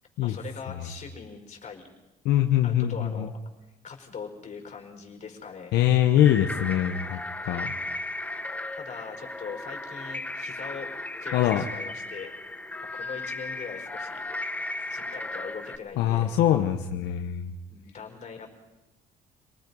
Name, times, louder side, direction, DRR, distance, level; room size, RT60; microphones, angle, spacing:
voice 1, 0.2-1.9 2.6-3.3 3.8-5.7 8.7-12.3 12.9-14.2 14.9-16.3 17.7-18.5, left 6 dB, 45° left, 3 dB, 4.8 m, -41 dB
voice 2, 2.2-3.3 5.7-7.7 11.3-11.6 16.0-17.5, left 11 dB, 85° left, 5 dB, 1.2 m, -23 dB
sound 1, 6.2-15.8, left 2 dB, 10° left, 1.1 m, -35 dB
27.0 x 19.5 x 5.5 m, 1.0 s
cardioid pair, 110°, 17 cm